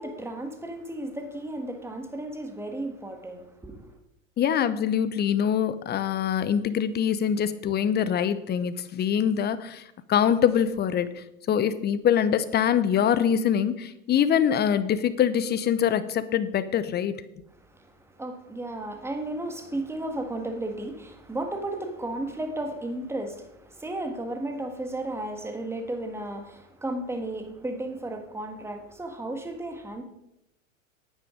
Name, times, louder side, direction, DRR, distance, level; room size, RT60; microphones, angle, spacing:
voice 1, 0.0-3.8 17.7-30.0, right 1 dB, 5° right, 1.7 m, -34 dB
voice 2, 4.4-9.8 10.1-17.2, left 8 dB, 25° left, 0.8 m, -24 dB
9.4 x 9.2 x 5.1 m
hypercardioid pair, 90°, 39 cm